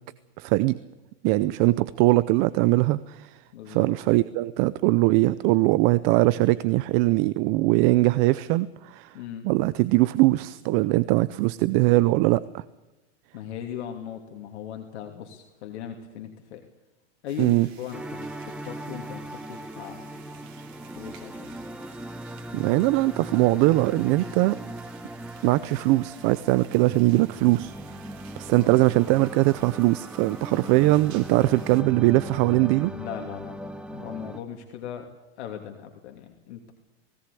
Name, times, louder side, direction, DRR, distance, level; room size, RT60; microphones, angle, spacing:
voice 1, 0.4-0.8 1.2-3.4 3.7-9.2 9.4-12.6 17.4-17.7 22.5-24.6 25.4-27.7 28.4-32.9, right 19 dB, 40° right, 17 dB, 0.6 m, -21 dB
voice 2, 1.4-1.7 3.5-3.9 9.1-9.5 13.3-16.6 17.2-20.2 20.9-21.6 30.5-30.6 32.9-35.1 35.4-36.7, left 9 dB, 70° left, 3 dB, 2.9 m, -39 dB
sound 1, 17.3-31.8, right 9 dB, 60° right, 3.4 m, -53 dB
sound 2, 17.9-34.4, right 1 dB, 5° right, 1.0 m, -39 dB
19.5 x 18.0 x 8.5 m, 1.0 s
supercardioid pair, 150°, 35 cm